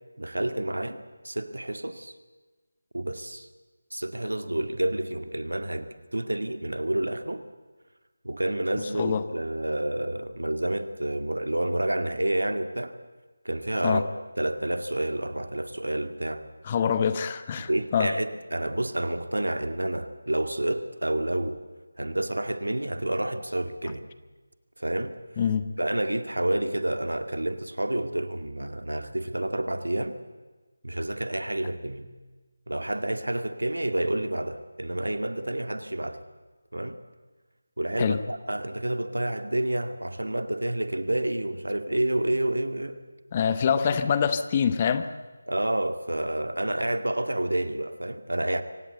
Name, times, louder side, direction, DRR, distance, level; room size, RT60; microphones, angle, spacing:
voice 1, 0.2-1.0 1.2-2.1 2.9-3.5 3.9-7.4 8.2-12.9 13.4-14.1 14.4-16.4 17.7-21.6 22.0-24.0 24.8-25.2 25.8-30.2 30.8-32.1 32.7-36.2 36.7-37.0 37.8-43.0 43.9-44.0 45.5-48.6, right 1 dB, 85° right, 9 dB, 2.1 m, -29 dB
voice 2, 8.9-9.3 13.8-14.1 16.6-18.1 25.4-25.7 38.0-38.2 43.3-45.1, left 7 dB, 25° left, 11 dB, 1.0 m, -25 dB
24.5 x 18.0 x 8.1 m, 1.3 s
figure-of-eight pair, 165°, 0 cm